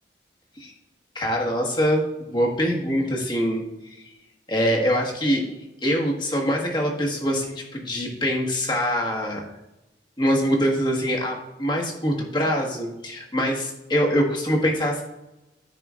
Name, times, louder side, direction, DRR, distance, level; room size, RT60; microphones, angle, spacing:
voice 1, 1.1-4.1 4.5-5.4 5.8-9.4 10.2-15.0, equal, 25° left, -1 dB, 1.4 m, -24 dB
13.5 x 5.0 x 2.4 m, 0.96 s
head